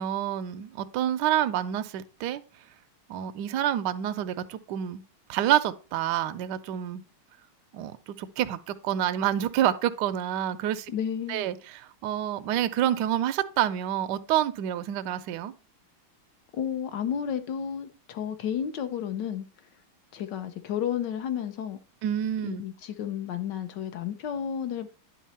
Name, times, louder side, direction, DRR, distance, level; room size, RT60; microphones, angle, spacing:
voice 1, 0.0-2.4 3.1-5.0 5.3-7.0 7.7-10.9 11.3-15.5 22.0-22.6, right 11 dB, 75° right, 1.0 m, -28 dB
voice 2, 10.9-11.5 16.5-19.4 20.1-21.8 22.4-24.9, left 8 dB, 65° left, 1.2 m, -32 dB
10.0 x 4.0 x 4.2 m
omnidirectional pair, 2.3 m